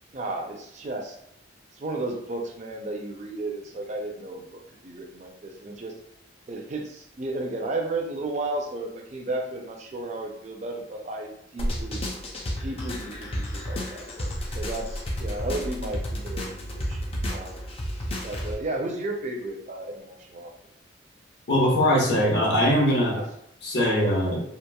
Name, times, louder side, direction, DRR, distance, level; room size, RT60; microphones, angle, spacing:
voice 1, 0.1-1.2 1.7-5.9 6.5-12.0 12.6-17.7 18.2-20.5 23.1-23.3, right 2 dB, 35° right, 2 dB, 0.4 m, -34 dB
sound 1, 11.6-18.5, equal, 30° left, 0.4 m, -31 dB
voice 2, 21.5-23.2 23.6-24.4, equal, 60° left, -4 dB, 0.9 m, -21 dB
2.9 x 2.5 x 2.2 m, 0.76 s
head